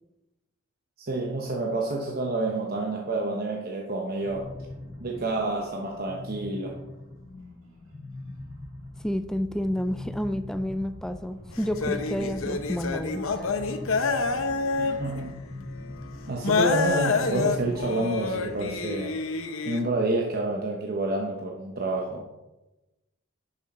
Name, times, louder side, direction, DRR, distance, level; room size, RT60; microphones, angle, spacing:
voice 1, 1.0-4.5 5.0-6.8 14.8-15.4 16.3-19.2 19.7-22.3, right 2 dB, 45° right, -1 dB, 0.9 m, -29 dB
sound 1, 4.2-18.0, left 2 dB, 75° right, 2.3 m, -42 dB
sound 2, 8.3-18.7, equal, 20° right, 2.4 m, -50 dB
voice 2, 9.0-13.5, equal, 5° left, 10 dB, 0.4 m, -30 dB
sound 3, 11.5-15.2 15.6-15.7 16.4-19.8, left 4 dB, 80° left, 0.9 m, -27 dB
11.0 x 5.9 x 4.3 m, 1.0 s
head